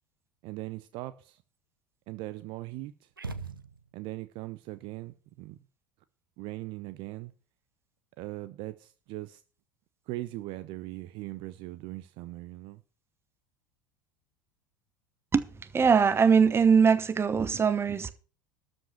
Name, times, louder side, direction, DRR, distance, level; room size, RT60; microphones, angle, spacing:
voice 1, 0.4-1.4 2.1-3.1 3.9-5.6 6.4-7.3 8.2-9.4 10.1-12.8, right 17 dB, 50° right, 0.6 m, -40 dB
sound 1, 3.2-4.2, right 3 dB, 85° right, 0.8 m, -40 dB
voice 2, 15.7-18.1, right 6 dB, 20° right, 1.1 m, -22 dB
13.0 x 5.3 x 7.0 m
figure-of-eight pair, 70°, 11 cm